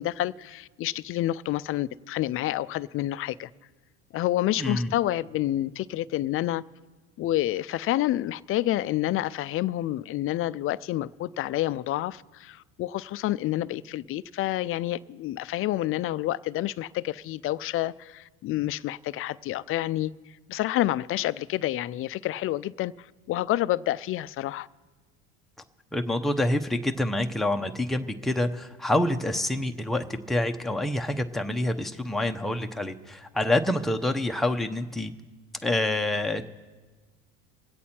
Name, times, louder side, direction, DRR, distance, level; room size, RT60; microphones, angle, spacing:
voice 1, 0.0-3.5 4.1-6.6 7.2-20.1 20.5-24.7, left 14 dB, 40° left, 0.4 m, -28 dB
voice 2, 4.6-4.9 25.9-35.1 35.6-36.4, left 1 dB, ahead, 0.7 m, -27 dB
24.5 x 8.3 x 4.3 m
supercardioid pair, 85°, 35 cm